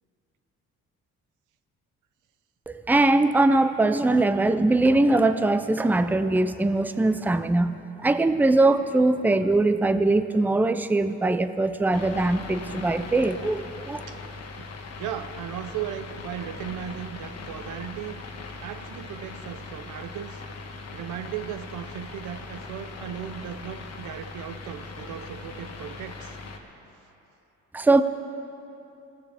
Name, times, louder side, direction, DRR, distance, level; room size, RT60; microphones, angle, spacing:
voice 1, 2.7-14.0 27.7-28.0, right 2 dB, 5° right, 10 dB, 0.5 m, -21 dB
sound 1, 11.9-26.6, left 3 dB, 55° left, 1.5 m, -40 dB
voice 2, 15.0-18.2 18.6-20.4 20.9-26.4, right 10 dB, 85° right, 10 dB, 0.8 m, -36 dB
21.0 x 15.5 x 3.5 m, 2.9 s
cardioid pair, 90°, 30 cm